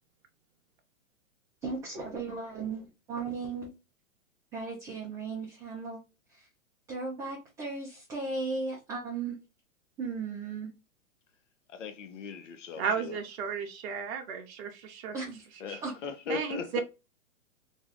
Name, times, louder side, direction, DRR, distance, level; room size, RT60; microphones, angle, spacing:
voice 1, 1.6-3.7 4.5-6.0 6.3-6.5 6.9-9.4 10.0-10.7 15.1-15.4 15.8-16.0, right 4 dB, 10° right, 0.3 m, -36 dB
voice 2, 11.7-13.2 15.6-16.8, left 6 dB, 60° left, 0.7 m, -39 dB
voice 3, 12.7-15.1 15.7-15.8 16.3-16.8, right 6 dB, 50° right, 0.7 m, -34 dB
2.5 x 2.2 x 3.5 m
hypercardioid pair, 115°, 41 cm